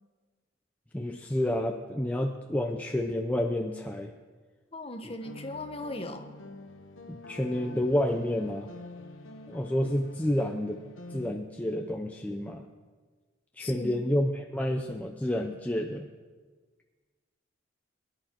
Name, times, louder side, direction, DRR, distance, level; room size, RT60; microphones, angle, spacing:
voice 1, 0.9-4.1 7.1-8.7 9.5-10.8 11.1-12.6 13.6-16.1, left 1 dB, 10° left, 2 dB, 0.5 m, -29 dB
voice 2, 4.7-6.3 13.6-14.0, left 1 dB, 30° left, 5 dB, 1.1 m, -38 dB
sound 1, 5.2-11.3, left 2 dB, 80° left, 1.1 m, -46 dB
21.5 x 11.0 x 4.6 m, 1.4 s
head